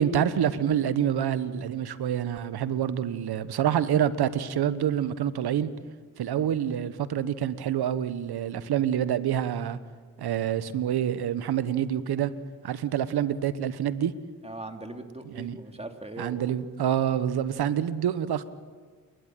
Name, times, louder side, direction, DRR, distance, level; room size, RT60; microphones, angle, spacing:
voice 1, 0.0-5.7 6.2-9.8 10.2-12.3 12.6-14.1 15.2-15.6 16.2-18.4, right 9 dB, 80° right, 14 dB, 1.2 m, -27 dB
voice 2, 14.4-16.5, right 2 dB, 15° right, 4 dB, 3.2 m, -40 dB
29.5 x 12.5 x 9.1 m, 1.5 s
supercardioid pair, 50°, 38 cm